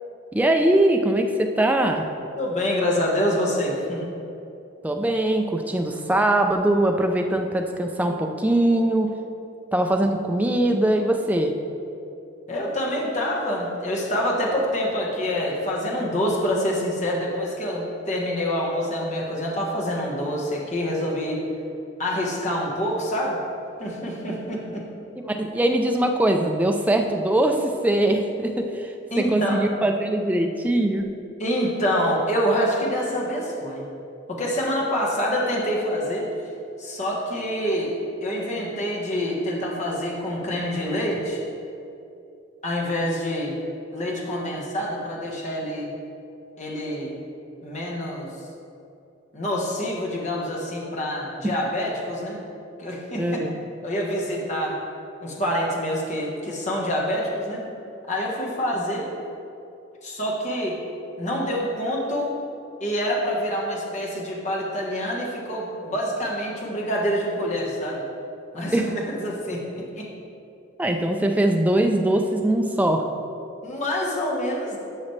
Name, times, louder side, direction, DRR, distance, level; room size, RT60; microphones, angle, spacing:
voice 1, 0.3-2.1 4.8-9.2 9.7-11.6 25.3-31.1 51.4-51.5 53.2-53.5 68.7-68.9 70.8-73.1, right 1 dB, 10° right, 3 dB, 0.4 m, -22 dB
voice 2, 2.4-4.1 12.5-21.4 22.0-23.4 23.8-24.9 29.1-29.6 31.4-33.8 34.3-36.3 36.8-37.9 38.2-41.4 42.6-43.6 43.9-45.9 46.6-47.1 47.6-48.3 49.3-52.4 52.8-53.4 53.8-54.8 55.2-57.6 58.1-59.1 60.0-60.8 61.2-62.4 62.8-68.0 68.5-70.1 73.6-74.8, equal, 35° left, -3 dB, 1.3 m, -26 dB
11.5 x 6.2 x 3.2 m, 2.7 s
head